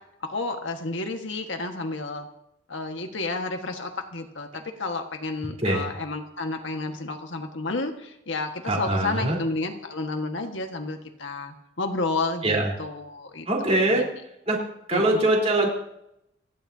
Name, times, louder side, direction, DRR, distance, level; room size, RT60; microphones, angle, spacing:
voice 1, 0.2-2.3 2.7-14.0 14.9-15.2, left 3 dB, 70° left, 4 dB, 1.6 m, -31 dB
voice 2, 8.7-9.4 12.4-12.7 13.5-14.0 14.5-14.6 14.9-15.7, right 2 dB, 35° right, -2 dB, 4.1 m, -22 dB
29.5 x 11.5 x 2.8 m, 0.81 s
head